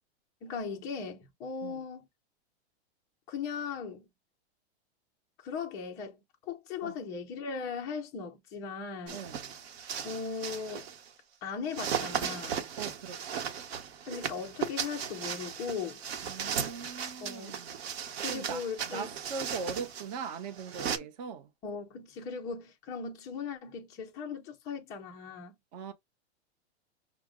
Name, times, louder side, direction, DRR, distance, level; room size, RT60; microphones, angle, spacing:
voice 1, 0.4-2.1 3.3-4.1 5.4-9.2 10.0-10.9 11.4-12.5 14.1-16.0 17.2-17.6 18.2-19.1 21.6-25.5, left 5 dB, 10° left, 0.3 m, -38 dB
voice 2, 9.1-9.4 12.8-13.5 16.2-17.7 18.3-18.6 18.9-21.5 25.7-25.9, right 5 dB, 40° right, 0.7 m, -40 dB
sound 1, 9.1-11.1 11.7-21.0, right 8 dB, 65° right, 0.9 m, -37 dB
5.9 x 2.0 x 3.5 m
supercardioid pair, 160°, 34 cm